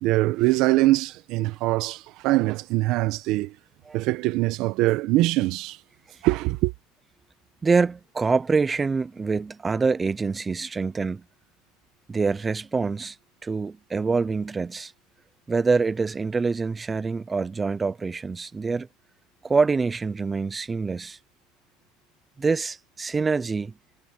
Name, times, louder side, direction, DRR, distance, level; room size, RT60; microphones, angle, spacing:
voice 1, 0.0-3.5 3.9-5.8 6.2-6.7, right 18 dB, 60° right, 1.3 m, -23 dB
voice 2, 7.6-11.2 12.1-13.2 13.4-14.9 15.5-18.9 19.4-21.2 22.4-23.7, right 4 dB, 20° right, 0.7 m, -25 dB
supercardioid pair, 110°, 0 cm